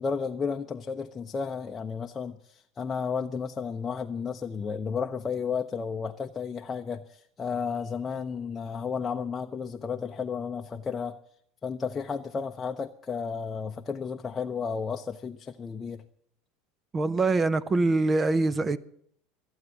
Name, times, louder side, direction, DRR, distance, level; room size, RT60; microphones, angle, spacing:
voice 1, 0.0-11.2 11.6-16.0, left 6 dB, 25° left, 0.7 m, -33 dB
voice 2, 16.9-18.8, right 3 dB, 25° right, 0.7 m, -24 dB
14.5 x 8.7 x 8.1 m
hypercardioid pair, 95°, 0 cm